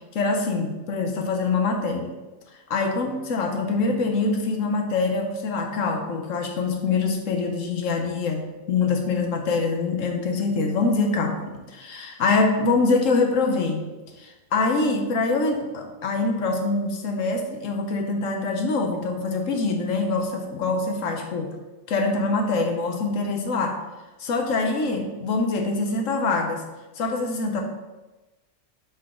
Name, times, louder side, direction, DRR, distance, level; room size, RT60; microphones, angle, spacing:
voice 1, 0.1-2.1 2.7-13.9 14.2-21.5 21.9-23.8 24.2-26.6 27.0-27.6, left 3 dB, 75° left, 4 dB, 1.1 m, -24 dB
6.7 x 3.8 x 3.7 m, 1.1 s
omnidirectional pair, 1.4 m